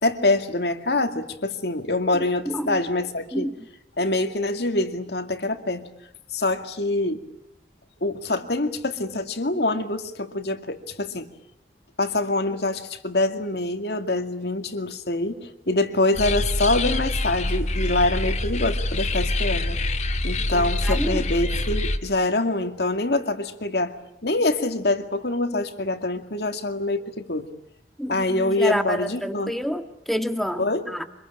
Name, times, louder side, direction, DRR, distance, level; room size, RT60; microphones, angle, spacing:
voice 1, 0.0-3.5 4.0-5.9 6.3-7.3 8.0-11.3 12.0-19.8 20.2-27.5 28.1-29.5 30.6-30.8, left 2 dB, 65° left, 7 dB, 2.2 m, -25 dB
voice 2, 2.1-2.8 3.3-3.5 20.5-21.3 28.0-31.0, equal, ahead, 7 dB, 1.7 m, -29 dB
sound 1, 16.1-22.0, left 1 dB, 40° left, 2.1 m, -25 dB
25.5 x 22.0 x 10.0 m, 0.78 s
head